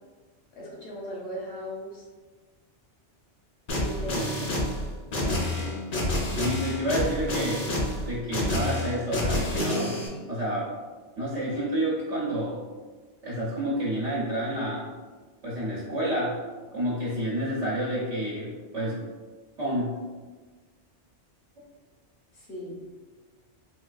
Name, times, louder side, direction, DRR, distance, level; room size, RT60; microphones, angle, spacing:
voice 1, 0.5-2.0 3.8-4.5 22.3-22.8, equal, 60° left, -4 dB, 1.1 m, -37 dB
sound 1, 3.7-10.1, left 1 dB, 45° left, 0.6 m, -28 dB
voice 2, 4.1-4.6 5.2-5.9 6.3-7.7 8.0-10.0 10.3-10.8 11.2-12.6 13.2-14.9 15.4-16.4 16.7-19.0 19.6-20.0, right 1 dB, 90° right, -7 dB, 1.1 m, -29 dB
4.3 x 2.3 x 2.4 m, 1.3 s
omnidirectional pair, 1.2 m